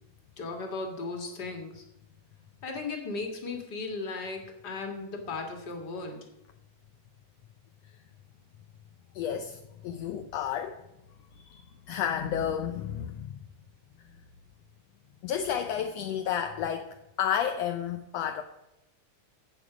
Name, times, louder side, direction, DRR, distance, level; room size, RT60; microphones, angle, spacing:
voice 1, 0.4-1.8 2.6-6.3, left 3 dB, 35° left, 2.1 m, -36 dB
voice 2, 9.1-10.8 11.4-11.6 11.9-13.3 15.2-18.4, left 9 dB, 75° left, 1.6 m, -31 dB
16.0 x 7.0 x 5.0 m
omnidirectional pair, 3.6 m